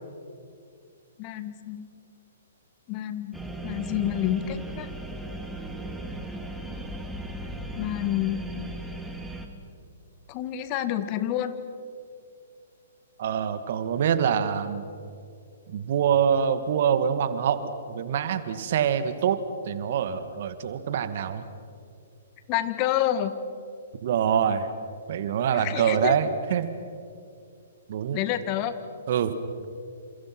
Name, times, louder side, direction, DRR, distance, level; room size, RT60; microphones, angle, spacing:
voice 1, 1.2-1.9 2.9-3.3 3.6-4.9 7.7-8.4 10.3-11.5 22.5-23.3 25.5-26.2 28.1-28.8, left 12 dB, 35° left, 11 dB, 2.0 m, -28 dB
sound 1, 3.3-9.5, right 2 dB, 5° right, 2.6 m, -36 dB
voice 2, 13.2-14.9 15.7-21.5 24.0-24.7 25.1-26.7 27.9-28.2 29.1-29.4, right 8 dB, 55° right, 11 dB, 1.9 m, -25 dB
29.5 x 28.0 x 6.1 m, 2.4 s
hypercardioid pair, 130°, 0 cm